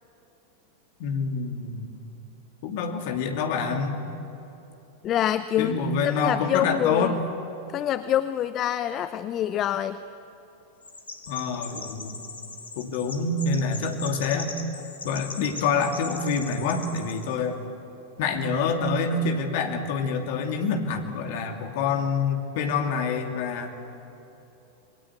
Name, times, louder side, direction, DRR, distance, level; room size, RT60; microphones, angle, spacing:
voice 1, 1.0-2.0 2.6-4.0 5.6-7.2 11.3-12.2 12.8-14.5 15.0-17.6 18.2-23.7, left 4 dB, 50° left, 4 dB, 2.7 m, -27 dB
voice 2, 5.0-5.7 6.0-7.2 7.7-10.0, left 11 dB, 30° left, 13 dB, 0.6 m, -26 dB
Chirp tweet, 10.8-17.3, left 4 dB, 75° left, 2.5 m, -40 dB
28.0 x 22.0 x 8.2 m, 3.0 s
figure-of-eight pair, 90°, 0 cm